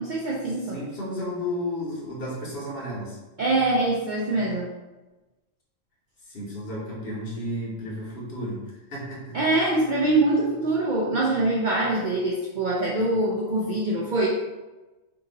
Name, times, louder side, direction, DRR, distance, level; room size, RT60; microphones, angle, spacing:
voice 1, 0.0-0.8 3.4-4.7 9.3-14.3, right 2 dB, 65° right, -4 dB, 0.4 m, -24 dB
voice 2, 0.7-3.2 6.3-8.6 8.9-9.4, left 1 dB, 45° left, -4 dB, 1.1 m, -32 dB
2.8 x 2.7 x 3.8 m, 1.1 s
omnidirectional pair, 1.4 m